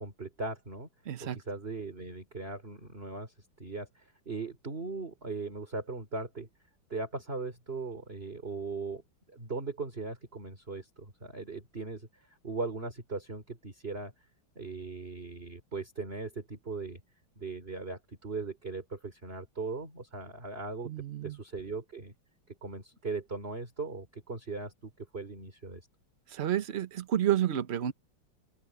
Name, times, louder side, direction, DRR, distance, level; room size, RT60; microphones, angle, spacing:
voice 1, 0.0-0.9 1.2-3.3 3.6-6.5 6.9-9.0 9.3-12.1 12.4-14.1 14.6-17.0 17.4-20.9 21.2-22.1 22.5-25.8, right 3 dB, 25° right, 3.6 m, -39 dB
voice 2, 1.1-1.4 20.8-21.4 26.3-27.9, right 11 dB, 50° right, 0.8 m, -30 dB
open air
omnidirectional pair, 2.3 m